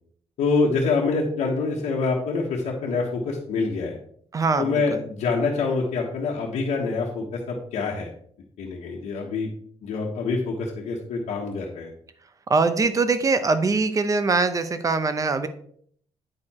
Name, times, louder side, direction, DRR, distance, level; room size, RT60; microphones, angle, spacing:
voice 1, 0.4-4.0 4.6-8.1 8.6-9.5 9.8-11.9, left 4 dB, 85° left, -2 dB, 1.3 m, -26 dB
voice 2, 4.3-5.0 12.5-15.5, right 4 dB, 30° right, 11 dB, 0.7 m, -22 dB
8.7 x 4.6 x 4.3 m, 0.62 s
cardioid pair, 120°, 11 cm